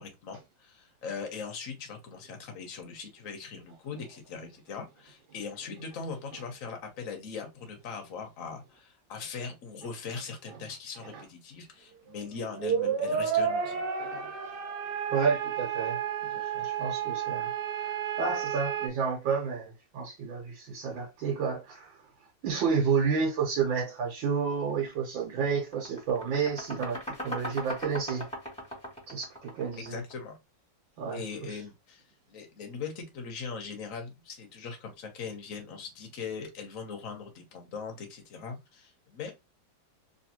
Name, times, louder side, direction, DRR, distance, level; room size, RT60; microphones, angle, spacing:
voice 1, 0.0-13.8 29.8-30.4 31.1-32.0 32.3-39.3, left 5 dB, 50° left, 1.2 m, -40 dB
sound 1, 12.4-18.9, right 7 dB, 65° right, 1.3 m, -31 dB
voice 2, 14.0-14.3 15.1-17.5 17.8-22.0 22.4-28.3 29.1-30.0 31.0-31.6, right 6 dB, 90° right, 1.7 m, -31 dB
sound 2, 24.7-24.9 25.3-30.2, equal, 5° left, 1.4 m, -39 dB
3.2 x 3.1 x 2.9 m
omnidirectional pair, 2.0 m